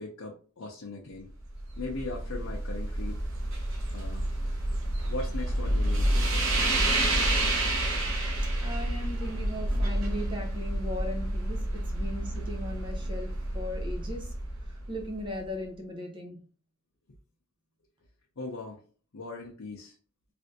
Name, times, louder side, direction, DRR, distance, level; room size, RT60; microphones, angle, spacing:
voice 1, 0.0-1.3 1.8-3.3 3.9-4.8 5.1-6.3 18.4-18.8 19.1-19.9, left 3 dB, 75° left, -2 dB, 0.7 m, -39 dB
sound 1, 1.3-15.4, right 1 dB, 70° right, 0.9 m, -29 dB
voice 2, 8.6-14.3 14.6-16.4, left 1 dB, 20° right, 1 dB, 0.6 m, -38 dB
3.3 x 2.5 x 2.7 m, 0.38 s
head